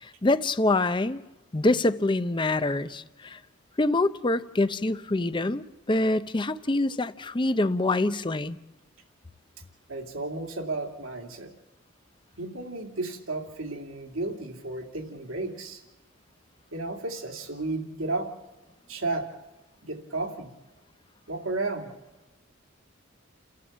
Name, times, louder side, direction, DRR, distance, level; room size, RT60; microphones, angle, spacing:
voice 1, 0.0-1.2 1.5-3.4 3.8-8.6, left 2 dB, 25° left, 0.6 m, -25 dB
voice 2, 9.9-11.5 12.4-15.8 16.7-18.3 18.9-19.3 19.8-20.5 21.3-21.9, right 2 dB, 85° right, 2.7 m, -33 dB
29.5 x 14.0 x 7.4 m
head